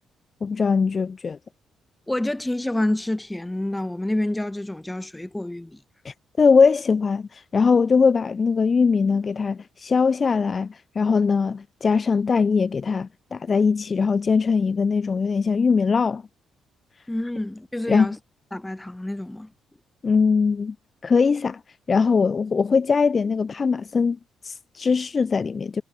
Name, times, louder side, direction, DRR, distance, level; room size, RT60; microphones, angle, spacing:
voice 1, 0.4-1.4 6.0-16.2 17.9-18.1 20.0-20.8 21.0-21.6 21.9-24.2 24.4-25.8, left 5 dB, 35° left, 0.5 m, -21 dB
voice 2, 2.1-5.8 17.1-18.2 18.5-19.5, left 1 dB, 10° left, 2.6 m, -28 dB
cardioid pair, 90°, 0 cm